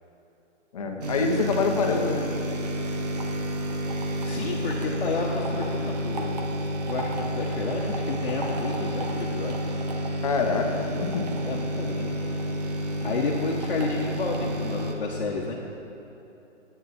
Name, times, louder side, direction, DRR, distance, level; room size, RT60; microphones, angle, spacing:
voice 1, 0.7-2.4 10.2-11.3, left 4 dB, 30° left, 2 dB, 1.2 m, -26 dB
sound 1, 1.0-14.9, equal, 35° right, 1.1 m, -30 dB
voice 2, 4.2-6.6 6.9-9.6 11.4-12.2 13.0-15.5, left 4 dB, 45° left, -3 dB, 1.4 m, -31 dB
26.5 x 9.4 x 4.4 m, 2.9 s
hypercardioid pair, 170°, 37 cm